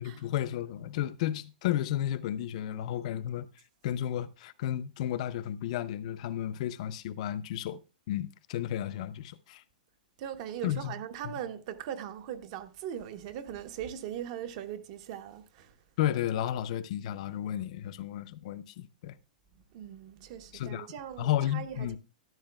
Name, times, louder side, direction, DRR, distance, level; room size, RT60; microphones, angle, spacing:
voice 1, 0.0-3.5 3.8-7.8 8.1-9.6 10.6-11.0 11.2-11.4 16.0-19.2 20.5-20.9 21.2-22.0, left 11 dB, 50° left, 0.5 m, -33 dB
voice 2, 10.2-15.7 19.7-22.0, right 10 dB, 45° right, 0.9 m, -40 dB
12.5 x 10.5 x 2.3 m
hypercardioid pair, 155°, 5 cm